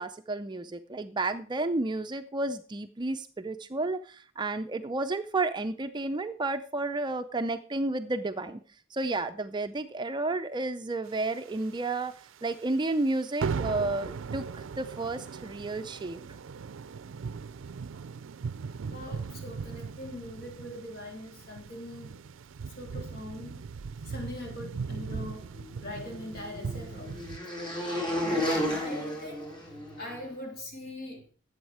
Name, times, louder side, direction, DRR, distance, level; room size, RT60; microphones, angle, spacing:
voice 1, 0.0-8.6 8.9-12.1 12.4-16.2, right 2 dB, 25° right, 9 dB, 0.5 m, -31 dB
sound 1, 11.2-12.2 12.5-12.7 13.0-13.1 13.4-27.4, right 5 dB, 85° right, 0.4 m, -38 dB
voice 2, 18.8-22.1 22.8-23.6 24.0-25.5 25.8-27.3 28.2-31.2, left 1 dB, 55° left, 1 dB, 2.8 m, -42 dB
sound 2, 25.6-30.2, left 1 dB, 25° left, 3.5 m, -33 dB
12.0 x 8.0 x 4.8 m, 0.41 s
head